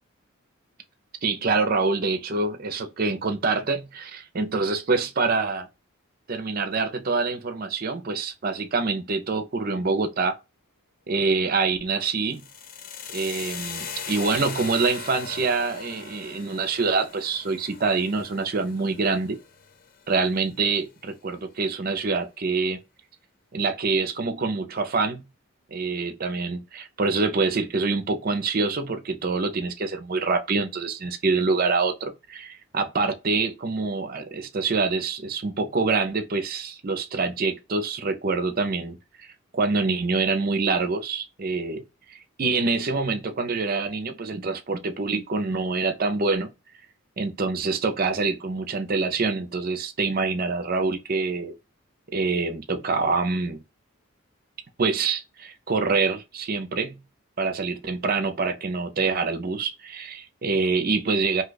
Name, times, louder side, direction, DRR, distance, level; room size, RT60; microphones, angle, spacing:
voice 1, 1.2-5.7 6.3-10.3 11.1-12.5 13.1-19.4 20.1-22.8 23.5-25.3 25.7-39.3 39.5-41.8 42.1-46.5 47.2-51.5 52.1-53.6 54.8-57.0 57.4-61.4, right 4 dB, 45° right, 0.5 m, -26 dB
sound 1, 12.3-20.3, left 6 dB, 40° left, 0.4 m, -39 dB
2.7 x 2.3 x 3.9 m
head